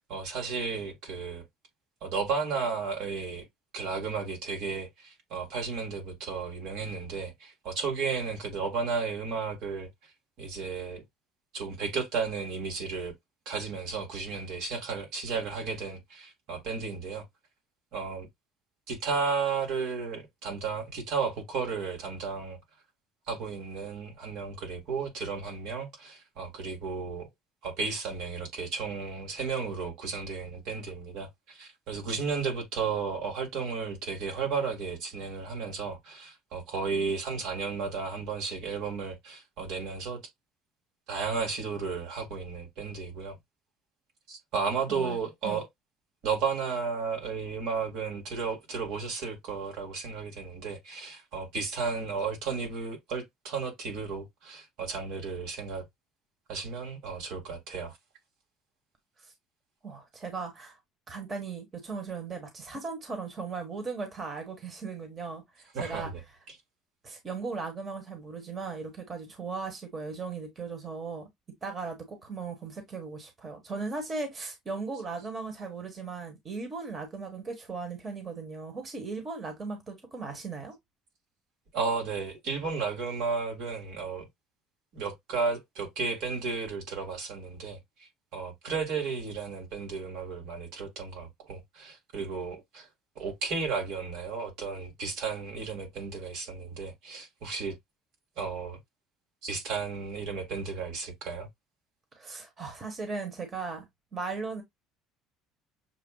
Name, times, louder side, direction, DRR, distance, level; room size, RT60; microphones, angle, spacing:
voice 1, 0.1-1.4 2.0-3.4 3.7-10.1 10.4-11.0 11.5-13.1 13.5-17.3 17.9-18.3 18.9-22.6 23.3-27.3 27.6-40.2 41.1-43.4 44.3-45.7 46.2-55.9 56.5-57.9 65.7-66.2 66.5-66.6 74.9-75.0 81.7-84.3 84.9-87.8 88.3-92.9 93.2-97.7 98.4-98.8 99.4-101.5, right 5 dB, 65° right, 1.9 m, -33 dB
voice 2, 59.8-60.8 61.1-66.1 67.0-71.3 71.6-80.7 102.2-103.9 104.1-104.6, right 4 dB, 25° right, 1.5 m, -37 dB
6.7 x 2.4 x 2.3 m
cardioid pair, 130°, 0 cm